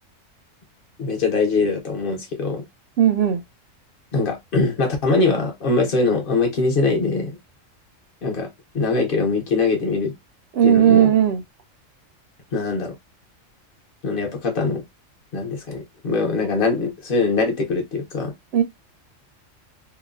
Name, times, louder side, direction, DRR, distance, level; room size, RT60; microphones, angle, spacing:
voice 1, 1.0-2.6 4.1-7.4 8.2-8.5 8.7-10.1 10.6-11.1 12.5-12.9 14.0-14.8 15.3-18.3, left 3 dB, 50° left, 0.9 m, -22 dB
voice 2, 3.0-3.4 10.5-11.4 18.5-18.6, right 9 dB, 65° right, 0.7 m, -16 dB
2.9 x 2.2 x 2.4 m
omnidirectional pair, 1.3 m